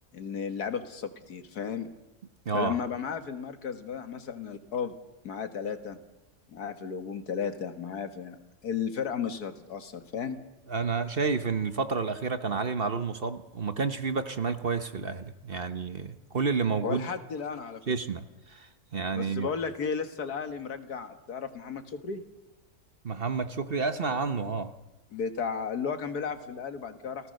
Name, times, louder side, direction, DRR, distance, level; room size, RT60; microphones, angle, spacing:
voice 1, 0.1-1.9 2.5-4.9 5.2-6.0 6.5-10.4 16.8-17.8 19.1-22.2 25.1-27.3, left 6 dB, 85° left, 8 dB, 2.1 m, -34 dB
voice 2, 2.5-2.8 10.7-17.1 17.9-19.5 23.0-24.7, right 5 dB, 40° right, 10 dB, 1.1 m, -30 dB
29.0 x 17.5 x 6.6 m, 1.0 s
omnidirectional pair, 1.6 m